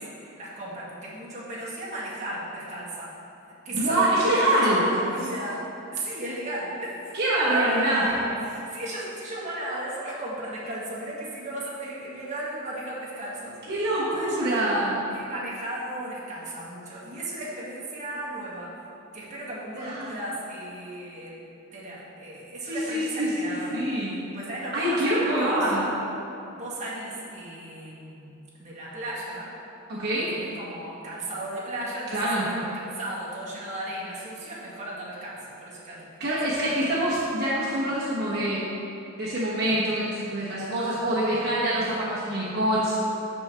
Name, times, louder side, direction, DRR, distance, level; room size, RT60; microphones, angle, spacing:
voice 1, 0.4-3.1 3.5-7.1 7.5-13.6 14.1-14.6 15.1-18.7 19.1-21.4 21.7-23.8 24.3-25.7 26.5-29.5 30.2-36.3 36.6-36.7 42.0-42.2, right 1 dB, 35° right, -7 dB, 1.6 m, -35 dB
voice 2, 3.7-4.9 7.1-8.1 13.7-15.0 19.8-20.1 22.6-24.1 24.7-25.9 29.9-30.3 32.1-32.5 36.2-38.7 39.1-42.9, right 1 dB, 50° right, -9 dB, 1.2 m, -25 dB
12.5 x 4.4 x 3.4 m, 2.9 s
head